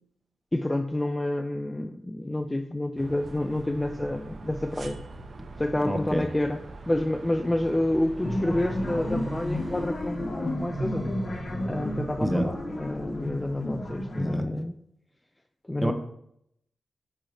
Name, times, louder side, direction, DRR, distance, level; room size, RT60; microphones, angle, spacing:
voice 1, 0.5-5.0 5.6-11.2 11.7-14.8 15.7-15.9, left 1 dB, 15° left, 6 dB, 0.3 m, -29 dB
sound 1, 3.0-9.9, right 2 dB, 50° right, 0.6 m, -43 dB
voice 2, 5.8-6.2 12.2-12.5 14.2-14.5 15.8-15.9, right 1 dB, 10° right, 7 dB, 0.7 m, -27 dB
sound 2, 8.2-14.4, left 1 dB, 40° left, 1.3 m, -31 dB
7.9 x 2.8 x 5.0 m, 0.74 s
wide cardioid pair, 115°, 0 cm